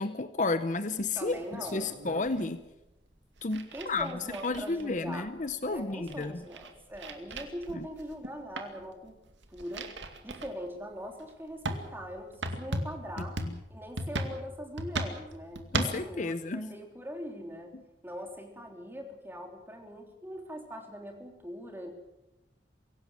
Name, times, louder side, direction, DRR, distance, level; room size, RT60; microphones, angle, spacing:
voice 1, 0.0-1.4 1.7-2.6 3.4-4.1 4.4-6.4 7.8-7.9 13.4-13.5 15.7-16.7, left 3 dB, 40° left, 12 dB, 0.8 m, -32 dB
sound 1, 1.0-2.5 3.4-5.0 5.5-5.6 5.8-8.3 8.6-8.8 9.3-10.5 11.1-11.2 11.6-16.1, right 2 dB, 80° right, 2.4 m, -37 dB
voice 2, 1.2-2.0 3.7-5.3 5.6-9.2 9.5-9.9 10.2-13.4 13.7-17.7 18.0-21.9, equal, 10° right, 3 dB, 3.5 m, -42 dB
25.0 x 17.0 x 7.5 m, 0.95 s
head